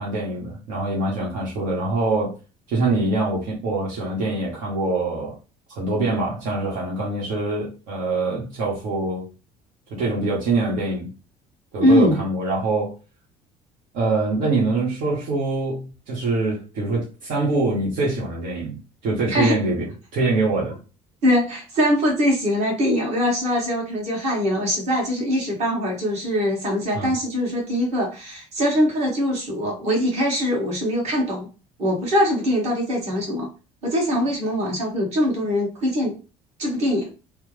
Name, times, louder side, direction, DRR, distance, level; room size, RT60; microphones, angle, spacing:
voice 1, 0.0-2.3 2.7-5.4 5.7-9.3 10.0-11.1 11.7-12.9 13.9-18.8 19.0-19.9 20.1-20.8 26.9-27.1, right 2 dB, 75° right, 1.1 m, -24 dB
voice 2, 11.8-12.2 19.3-19.6 21.2-31.5 31.8-33.5 33.8-36.2 36.6-37.1, equal, 50° right, 1.5 m, -22 dB
3.2 x 2.0 x 3.1 m
cardioid pair, 110°, 14 cm